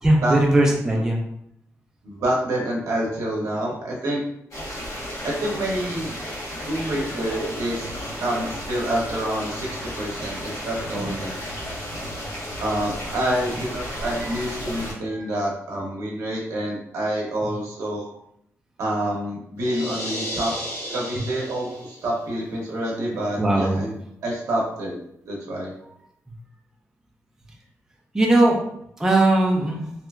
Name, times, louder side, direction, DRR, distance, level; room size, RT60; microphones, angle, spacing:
voice 1, 0.0-1.2 6.4-6.8 11.0-11.2 14.0-14.5 14.8-15.4 23.4-23.8 28.1-28.6 29.0-29.9, right 1 dB, 10° right, -1 dB, 0.4 m, -20 dB
voice 2, 2.0-4.2 5.2-6.1 6.6-11.4 12.6-18.1 18.8-20.5 20.9-23.9 24.2-25.0 25.3-25.7, right 1 dB, 85° right, -3 dB, 0.6 m, -27 dB
sound 1, 4.5-14.9, equal, 80° left, 1.0 m, -33 dB
sound 2, 19.6-22.1, equal, 55° left, 1.2 m, -33 dB
2.8 x 2.3 x 2.3 m, 0.74 s
wide cardioid pair, 150°, 5 cm